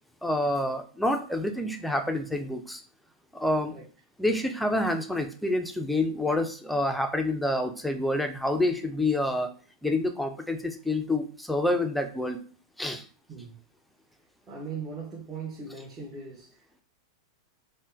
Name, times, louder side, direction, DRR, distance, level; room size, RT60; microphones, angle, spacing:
voice 1, 0.2-2.8 3.3-3.7 4.2-9.5 9.8-12.4 12.8-13.0, left 1 dB, ahead, 0.4 m, -27 dB
voice 2, 13.3-13.6 14.5-16.8, right 5 dB, 25° right, 0.9 m, -39 dB
3.6 x 2.2 x 2.6 m
hypercardioid pair, 110°, 2 cm